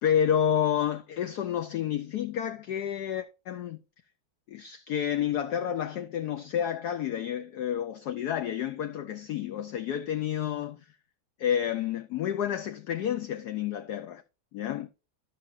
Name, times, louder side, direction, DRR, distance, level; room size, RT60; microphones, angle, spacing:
voice 1, 0.0-3.8 4.5-10.8 11.4-14.2 14.5-14.9, left 9 dB, 75° left, 0.9 m, -30 dB
13.0 x 5.8 x 2.5 m
omnidirectional pair, 2.2 m